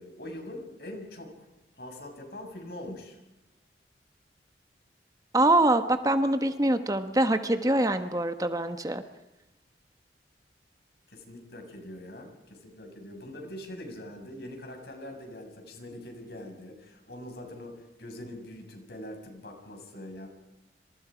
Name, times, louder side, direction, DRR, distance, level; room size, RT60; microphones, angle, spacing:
voice 1, 0.0-1.5 1.7-3.2 11.1-20.3, left 1 dB, 60° left, 3 dB, 6.9 m, -43 dB
voice 2, 5.3-9.0, right 1 dB, 20° right, 9 dB, 1.2 m, -24 dB
27.5 x 26.5 x 5.2 m, 0.97 s
head